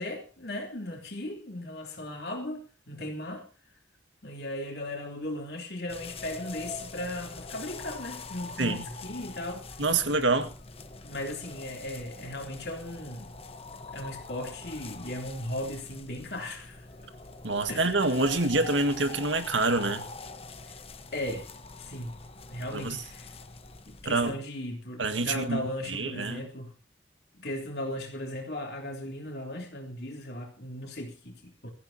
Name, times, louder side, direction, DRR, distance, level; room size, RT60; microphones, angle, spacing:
voice 1, 0.0-3.5 4.2-9.6 11.0-13.4 13.9-16.9 17.7-18.1 20.7-20.8 21.1-21.5 21.8-22.2 22.5-23.3 23.9-26.8 27.4-31.7, left 1 dB, 60° left, 3.4 m, -37 dB
sound 1, 5.9-24.4, left 3 dB, 30° left, 1.2 m, -44 dB
voice 2, 8.6-8.9 9.8-10.5 17.4-20.1 22.7-23.0 24.1-24.4 25.0-26.5, right 3 dB, 90° right, 1.8 m, -27 dB
24.0 x 15.0 x 2.9 m
head